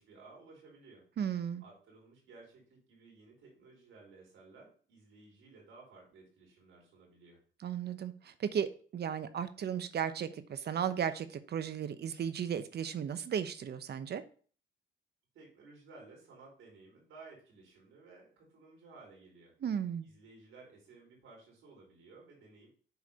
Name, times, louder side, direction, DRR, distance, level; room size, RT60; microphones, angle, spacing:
voice 1, 0.0-1.1 1.6-7.4 15.3-19.5 20.0-22.7, right 3 dB, 80° right, 4.8 m, -56 dB
voice 2, 1.2-1.6 7.6-14.2 19.6-20.1, right 8 dB, 55° right, 1.0 m, -35 dB
8.2 x 4.8 x 5.4 m
cardioid pair, 90°, 20 cm